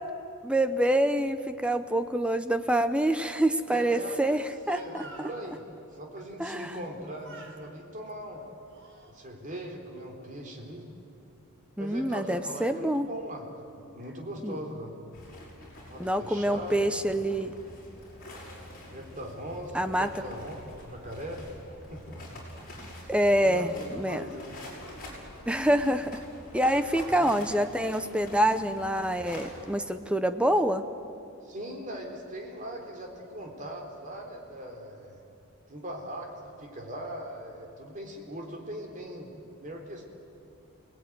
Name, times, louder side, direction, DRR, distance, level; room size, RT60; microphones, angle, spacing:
voice 1, 0.4-5.3 6.4-6.7 11.8-13.1 14.4-14.6 16.0-17.5 19.7-20.1 23.1-24.2 25.5-26.2 26.5-30.8, right 1 dB, 5° right, 9 dB, 0.7 m, -26 dB
voice 2, 3.7-5.6 5.9-8.4 9.1-10.9 11.8-13.5 13.8-15.0 15.9-17.2 18.9-21.4 21.9-22.2 23.4-24.6 25.6-25.7 27.1-27.3 31.4-35.2 35.7-36.3 36.6-39.3 39.6-40.1, equal, 35° right, 1 dB, 3.8 m, -40 dB
Speech, 4.6-5.4 6.7-7.0 7.2-7.6 8.3-9.1, right 2 dB, 60° right, 4.1 m, -49 dB
sound 1, 15.1-29.7, left 1 dB, 40° left, 6.7 m, -46 dB
29.5 x 19.0 x 9.5 m, 2.7 s
head